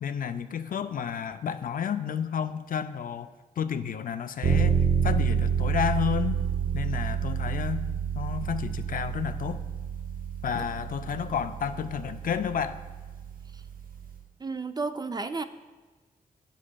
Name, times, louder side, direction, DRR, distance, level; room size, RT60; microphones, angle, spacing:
voice 1, 0.0-6.4 6.7-7.9 8.1-9.6 10.4-12.8, left 8 dB, 60° left, 10 dB, 0.4 m, -31 dB
sound 1, 4.4-14.2, right 7 dB, 60° right, 0.8 m, -29 dB
voice 2, 14.4-15.4, right 4 dB, 25° right, 10 dB, 0.3 m, -32 dB
9.7 x 7.4 x 2.3 m, 1.3 s
cardioid pair, 70°, 16 cm